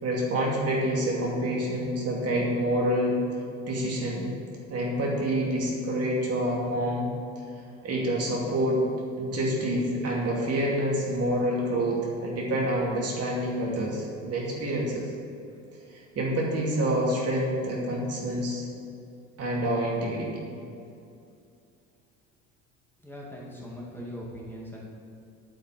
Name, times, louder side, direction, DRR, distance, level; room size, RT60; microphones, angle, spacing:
voice 1, 0.0-3.2 3.7-4.3 4.7-7.1 7.8-8.8 9.2-15.1 15.9-18.7 19.4-20.3, right 1 dB, 45° right, -3 dB, 2.6 m, -27 dB
voice 2, 23.0-24.9, equal, 5° left, -4 dB, 2.6 m, -40 dB
8.7 x 5.7 x 7.9 m, 2.5 s
hypercardioid pair, 75°, 35 cm